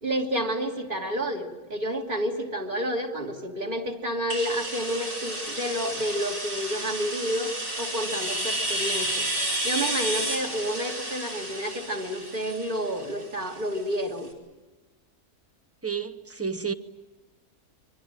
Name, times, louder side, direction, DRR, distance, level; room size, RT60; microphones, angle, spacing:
voice 1, 0.0-9.3 9.6-14.3, equal, 35° right, 3.0 m, -30 dB
sound 1, 4.3-13.9, right 1 dB, 65° right, 5.6 m, -31 dB
voice 2, 15.8-16.7, right 6 dB, 15° right, 0.6 m, -30 dB
26.5 x 24.0 x 9.0 m
omnidirectional pair, 1.5 m